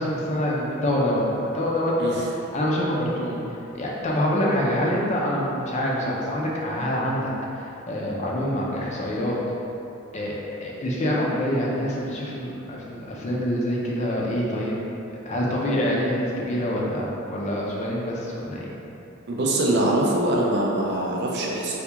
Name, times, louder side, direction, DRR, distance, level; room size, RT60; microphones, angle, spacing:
voice 1, 0.0-2.3 2.5-3.4 3.7-9.4 10.1-10.3 10.6-14.7 15.1-18.7, equal, 35° left, -4 dB, 0.5 m, -26 dB
voice 2, 19.3-21.8, right 1 dB, 55° right, -2 dB, 0.5 m, -23 dB
3.4 x 2.3 x 2.9 m, 2.8 s
head